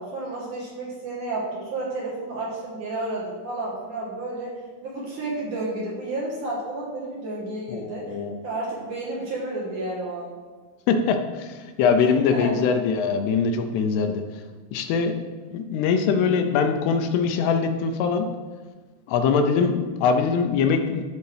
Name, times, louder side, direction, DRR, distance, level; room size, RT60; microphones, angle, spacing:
voice 1, 0.0-4.5 4.8-8.2 8.4-10.3 12.1-12.7, right 2 dB, 60° right, -4 dB, 2.4 m, -31 dB
voice 2, 7.7-8.3 10.9-14.2 14.7-15.2 15.5-18.3 19.1-21.0, left 5 dB, 80° left, 6 dB, 2.7 m, -22 dB
13.0 x 4.7 x 3.3 m, 1.4 s
omnidirectional pair, 4.8 m